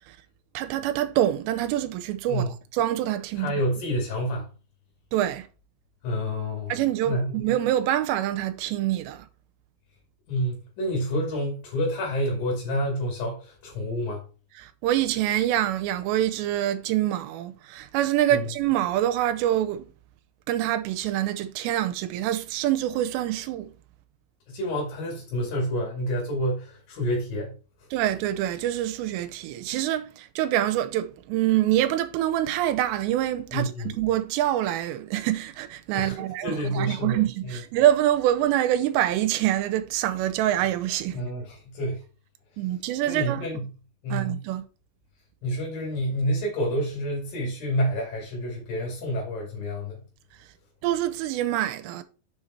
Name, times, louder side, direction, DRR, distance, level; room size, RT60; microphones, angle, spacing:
voice 1, 0.5-3.5 5.1-5.5 6.7-9.3 14.6-19.9 20.5-23.7 27.9-41.3 42.6-43.4 44.1-44.6 50.8-52.0, right 12 dB, 90° right, 2.9 m, -25 dB
voice 2, 3.4-4.5 6.0-6.8 7.0-7.4 10.3-14.2 18.3-18.5 24.5-27.6 33.5-33.9 35.9-37.6 41.1-42.0 43.1-43.7 44.0-44.4 45.4-50.0, equal, 60° left, 3.7 m, -28 dB
6.9 x 5.1 x 4.2 m
omnidirectional pair, 4.9 m